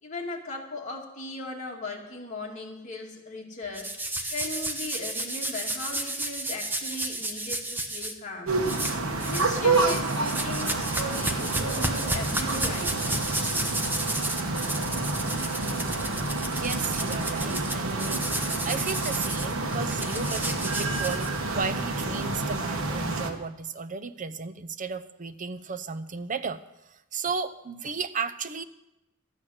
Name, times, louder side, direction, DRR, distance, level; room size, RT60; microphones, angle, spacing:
voice 1, 0.0-3.9 4.3-8.5 9.2-13.0, left 2 dB, 35° left, -1 dB, 2.4 m, -38 dB
sound 1, 3.7-8.1 8.7-9.5 9.7-21.6, right 1 dB, 10° right, 0.8 m, -32 dB
sound 2, 8.5-23.3, right 3 dB, 75° right, 1.4 m, -29 dB
voice 2, 16.5-18.2 18.6-26.6 27.1-28.6, right 5 dB, 40° right, 12 dB, 0.6 m, -34 dB
12.5 x 8.8 x 6.5 m, 0.93 s
head